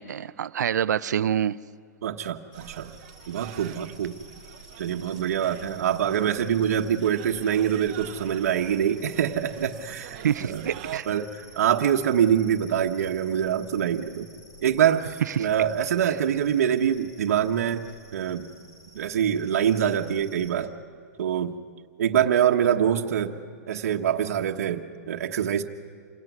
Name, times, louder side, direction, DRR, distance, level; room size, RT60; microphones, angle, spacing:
voice 1, 0.0-1.6 10.2-11.1 15.4-15.5, right 9 dB, 80° right, 15 dB, 0.7 m, -26 dB
voice 2, 2.0-2.9 3.3-4.2 4.8-10.7 11.0-14.3 14.6-18.5 18.9-20.7 21.2-21.6 22.0-23.4 23.7-25.6, right 9 dB, 60° right, 3 dB, 1.3 m, -25 dB
sound 1, 2.5-20.5, left 1 dB, 70° left, 5.9 m, -51 dB
sound 2, 2.5-11.0, right 13 dB, 30° right, 0.9 m, -45 dB
27.5 x 17.0 x 9.4 m, 2.2 s
hypercardioid pair, 175°, 9 cm